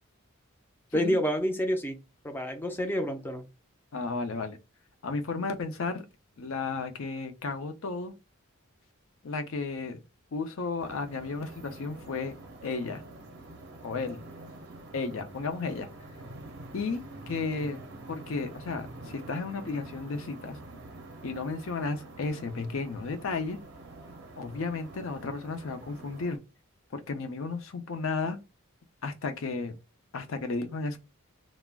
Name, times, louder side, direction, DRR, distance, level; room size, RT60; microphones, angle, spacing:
voice 1, 0.9-2.0 2.2-3.4, equal, 10° left, 0.4 m, -28 dB
voice 2, 3.9-4.6 5.0-6.0 6.4-8.1 9.2-10.0 10.3-12.3 12.6-13.0 13.8-14.2 14.9-15.9 16.7-17.8 18.1-20.6 21.2-23.6 24.4-26.4 26.9-28.4 29.0-29.7 30.1-31.0, left 4 dB, 65° left, 0.5 m, -33 dB
sound 1, 10.8-26.4, right 2 dB, 50° right, 0.5 m, -46 dB
2.3 x 2.0 x 3.4 m
head